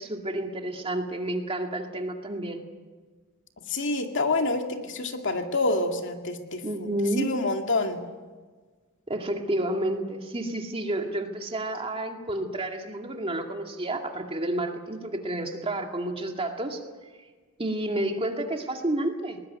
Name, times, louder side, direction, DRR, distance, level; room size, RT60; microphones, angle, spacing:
voice 1, 0.0-2.6 6.6-7.3 9.1-16.8 17.6-19.4, right 1 dB, 25° right, 3 dB, 2.2 m, -30 dB
voice 2, 3.7-6.6 7.2-8.0, left 2 dB, 60° left, 4 dB, 2.3 m, -27 dB
21.0 x 20.0 x 9.5 m, 1.4 s
head